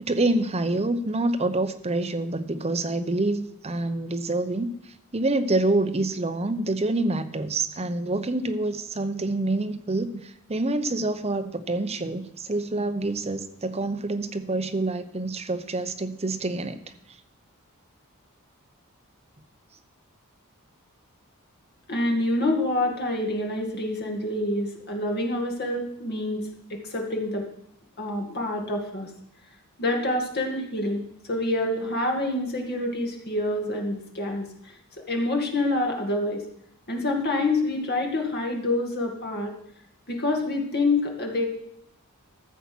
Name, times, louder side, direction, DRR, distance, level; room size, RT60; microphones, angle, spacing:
voice 1, 0.0-4.8 5.1-16.8, right 2 dB, 30° right, 9 dB, 0.8 m, -27 dB
voice 2, 21.9-26.5 26.8-27.4 28.0-29.1 29.8-31.0 31.3-34.7 35.1-36.4 36.9-39.5 40.1-41.4, left 2 dB, 45° left, 2 dB, 2.1 m, -27 dB
14.0 x 7.0 x 6.1 m, 0.73 s
head